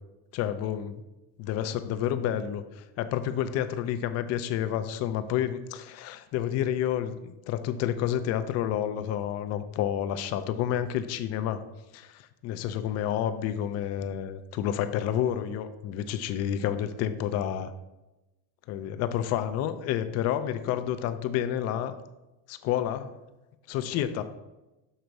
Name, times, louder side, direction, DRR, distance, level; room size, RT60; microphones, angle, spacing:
voice 1, 0.3-1.0 1.4-11.6 11.9-17.7 18.7-22.0 22.5-23.1 23.7-24.2, left 10 dB, 40° left, 11 dB, 0.4 m, -29 dB
6.6 x 4.0 x 4.6 m, 1.0 s
cardioid pair, 165°, 41 cm